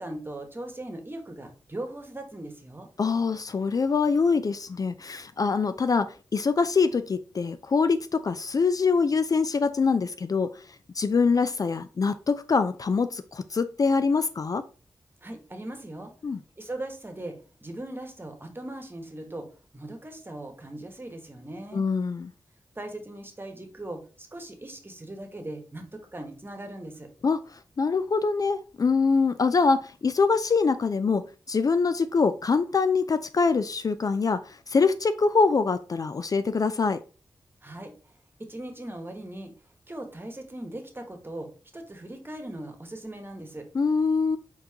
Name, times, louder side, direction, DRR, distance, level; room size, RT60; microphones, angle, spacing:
voice 1, 0.0-2.9 15.2-16.1 16.6-19.5 19.7-21.8 22.8-27.1 37.6-39.5 39.9-43.7, right 1 dB, 25° right, 1.2 m, -39 dB
voice 2, 3.0-10.7 10.9-14.6 16.2-16.4 21.7-22.3 27.2-27.4 27.8-37.0 43.7-44.4, left 4 dB, 50° left, 0.3 m, -24 dB
4.6 x 3.8 x 2.8 m
cardioid pair, 40°, 8 cm